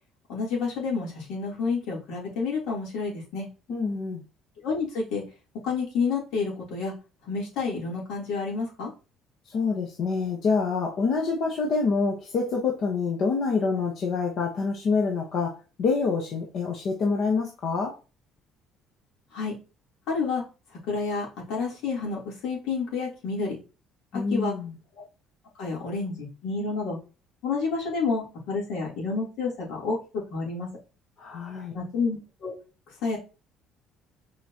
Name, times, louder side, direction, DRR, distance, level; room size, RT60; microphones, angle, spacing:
voice 1, 0.3-3.5 4.6-5.2 5.6-6.9 7.2-8.9 19.3-19.5 20.1-20.4 20.9-23.6 24.1-24.5 25.6-27.0 27.4-30.7 31.7-32.5 33.0-33.2, left 4 dB, 70° left, -3 dB, 3.3 m, -29 dB
voice 2, 3.7-4.2 9.5-17.9 24.1-24.7 31.2-31.7, left 4 dB, 50° left, 0 dB, 1.1 m, -26 dB
7.2 x 4.9 x 2.9 m, 0.33 s
cardioid pair, 160°, 0 cm